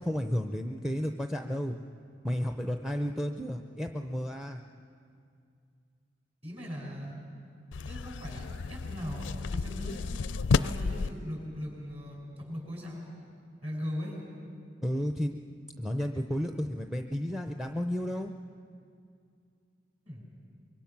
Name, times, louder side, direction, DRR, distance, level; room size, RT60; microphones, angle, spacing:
voice 1, 0.0-1.8 2.2-4.6 14.8-15.4 15.8-18.3, equal, ahead, 5 dB, 0.6 m, -32 dB
voice 2, 6.4-7.2 7.8-10.1 10.5-13.1 13.6-14.3 20.1-20.3, equal, 35° right, -1 dB, 6.3 m, -39 dB
sound 1, 7.7-11.1, left 4 dB, 85° left, 0.4 m, -31 dB
24.5 x 23.0 x 5.9 m, 2.4 s
head